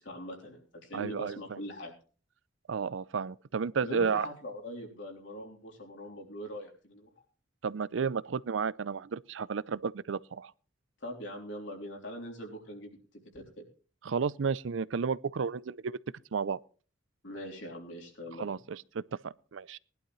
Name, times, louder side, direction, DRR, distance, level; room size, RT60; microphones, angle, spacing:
voice 1, 0.0-1.9 3.8-7.1 11.0-13.0 13.3-13.6 17.2-18.6, equal, 75° left, 3.6 m, -42 dB
voice 2, 0.9-1.4 2.7-4.3 7.6-10.5 14.0-16.0 16.3-16.6 18.4-19.8, right 5 dB, 85° right, 0.5 m, -32 dB
19.5 x 11.5 x 3.1 m
head